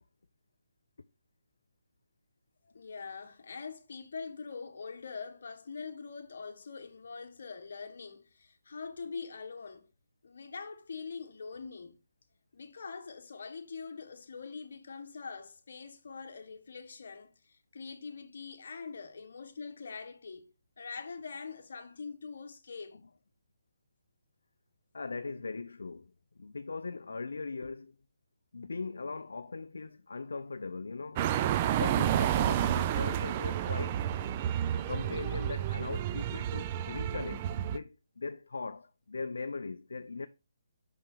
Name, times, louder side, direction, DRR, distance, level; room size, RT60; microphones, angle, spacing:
voice 1, 2.7-9.9 10.2-12.0 12.5-23.0, left 5 dB, 65° left, 1.3 m, -43 dB
voice 2, 24.9-26.1 26.4-28.0 28.5-31.3 31.7-34.0 34.7-40.3, left 4 dB, 80° left, 0.4 m, -39 dB
sound 1, 31.2-37.8, right 11 dB, 30° right, 0.4 m, -30 dB
5.9 x 5.8 x 3.7 m
hypercardioid pair, 160°, 0 cm